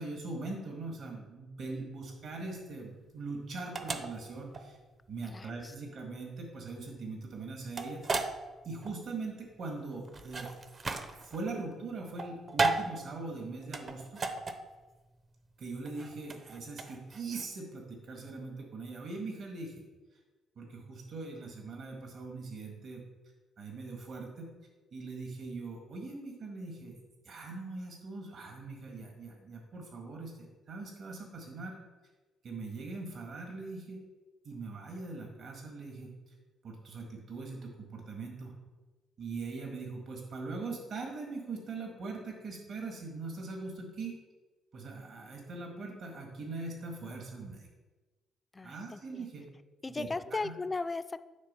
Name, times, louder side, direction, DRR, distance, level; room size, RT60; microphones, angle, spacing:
voice 1, 0.0-4.8 5.1-8.3 8.6-10.5 11.2-14.2 15.6-19.8 20.6-23.0 23.6-24.5 24.9-27.0 27.2-31.8 32.4-34.0 34.4-36.1 36.6-38.5 39.2-44.1 44.7-47.7 48.6-49.5 49.9-50.5, right 3 dB, 65° right, 1 dB, 1.7 m, -41 dB
sound 1, 2.0-17.4, right 3 dB, 40° right, 0.7 m, -36 dB
voice 2, 5.2-5.7 48.5-49.3 49.8-51.2, left 3 dB, 25° left, 13 dB, 0.3 m, -37 dB
9.6 x 3.7 x 5.5 m, 1.2 s
cardioid pair, 90°, 0 cm